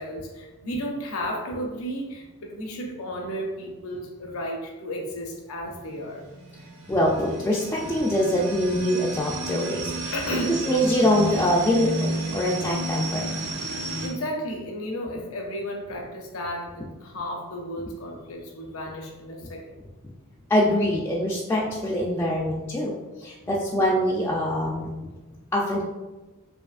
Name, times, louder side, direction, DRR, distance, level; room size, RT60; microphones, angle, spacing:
voice 1, 0.0-6.2 10.1-10.7 14.0-19.7 23.5-23.8, equal, 70° left, 0 dB, 0.6 m, -33 dB
sound 1, 5.6-14.1, right 1 dB, 65° right, 1.0 m, -32 dB
voice 2, 6.9-10.1 10.7-13.3 20.5-24.9 25.5-25.8, equal, 10° left, -4 dB, 0.3 m, -24 dB
4.8 x 2.7 x 2.4 m, 1.2 s
head